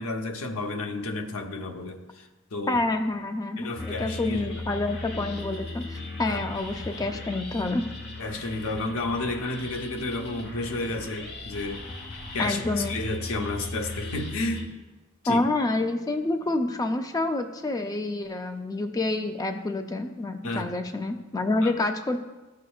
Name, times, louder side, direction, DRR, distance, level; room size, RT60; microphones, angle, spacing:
voice 1, 0.0-2.8 3.6-4.8 6.2-6.4 8.2-11.8 12.3-14.7 15.2-15.4 20.4-20.7 21.6-21.7, left 2 dB, 80° left, 5 dB, 0.8 m, -32 dB
voice 2, 2.7-7.8 12.4-13.0 15.3-22.2, left 2 dB, 15° left, 6 dB, 0.4 m, -28 dB
sound 1, 3.7-14.7, left 2 dB, 55° left, 1.1 m, -38 dB
13.5 x 6.6 x 2.3 m, 1.1 s
head